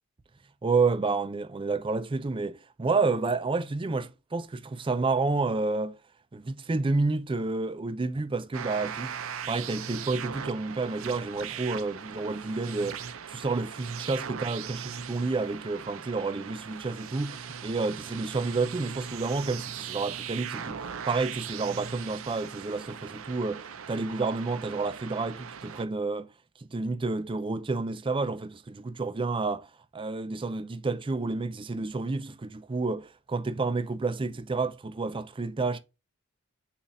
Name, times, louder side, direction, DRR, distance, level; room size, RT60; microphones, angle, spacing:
voice 1, 0.6-6.0 6.3-9.2 9.5-26.3 26.7-29.7 29.9-35.8, right 3 dB, 25° right, 0.4 m, -30 dB
sound 1, 8.5-25.9, right 7 dB, 70° right, 0.6 m, -39 dB
7.1 x 2.5 x 5.4 m
head